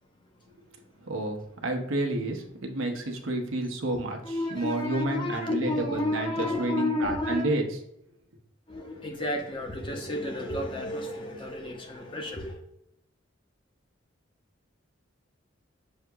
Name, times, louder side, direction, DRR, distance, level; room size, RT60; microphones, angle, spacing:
voice 1, 1.0-7.6, right 2 dB, 90° right, 0.8 m, -30 dB
voice 2, 4.2-7.5 8.7-12.6, left 1 dB, 25° left, 0.6 m, -31 dB
6.4 x 2.8 x 2.3 m
head